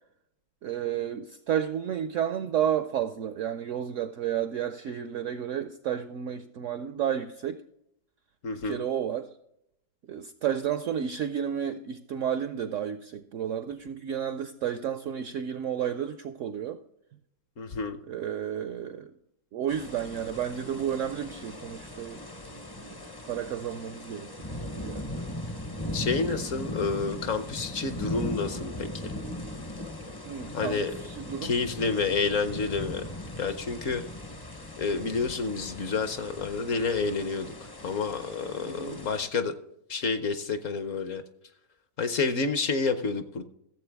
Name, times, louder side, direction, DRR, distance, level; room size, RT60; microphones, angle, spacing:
voice 1, 0.6-7.6 8.6-9.3 10.1-16.8 18.1-19.1 19.5-22.2 22.8-25.3 30.2-31.5 38.7-39.0, right 9 dB, 75° right, 0.7 m, -32 dB
voice 2, 8.4-8.8 17.6-18.0 25.9-29.1 30.5-30.9 31.4-33.0 33.4-34.0 34.8-37.5 37.8-39.5 39.9-41.2 42.0-43.4, left 4 dB, 60° left, 1.0 m, -29 dB
sound 1, 19.7-39.3, left 1 dB, 25° left, 0.5 m, -39 dB
15.0 x 7.6 x 3.4 m
omnidirectional pair, 1.8 m